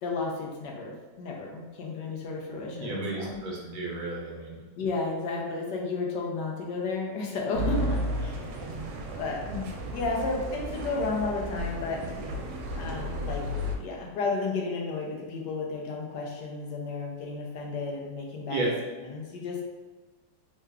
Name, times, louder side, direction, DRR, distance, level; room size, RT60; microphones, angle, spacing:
voice 1, 0.0-3.4 4.8-8.5 9.2-12.0 12.7-13.4 13.8-18.6 19.0-19.6, left 3 dB, 80° left, -1 dB, 1.3 m, -32 dB
voice 2, 2.7-4.6 18.5-18.7, right 2 dB, 65° right, -3 dB, 1.1 m, -32 dB
sound 1, 7.5-13.8, equal, 85° right, 1.3 m, -33 dB
3.6 x 2.2 x 3.3 m, 1.2 s
omnidirectional pair, 1.9 m